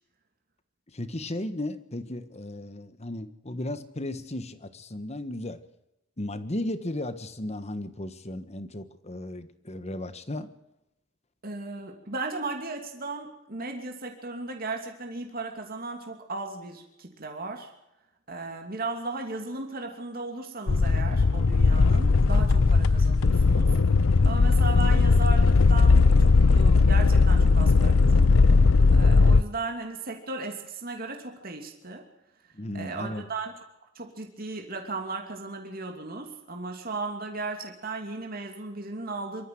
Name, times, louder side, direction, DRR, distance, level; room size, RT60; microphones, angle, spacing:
voice 1, 0.9-5.6 6.2-10.5 32.5-33.2, left 1 dB, 30° left, 12 dB, 1.4 m, -35 dB
voice 2, 11.4-17.7 18.3-28.6 28.9-32.1 32.7-33.5 33.9-39.5, right 3 dB, 45° right, 3 dB, 2.9 m, -36 dB
sound 1, 20.7-29.4, left 4 dB, 80° left, 0.6 m, -19 dB
25.0 x 13.5 x 7.9 m, 0.86 s
head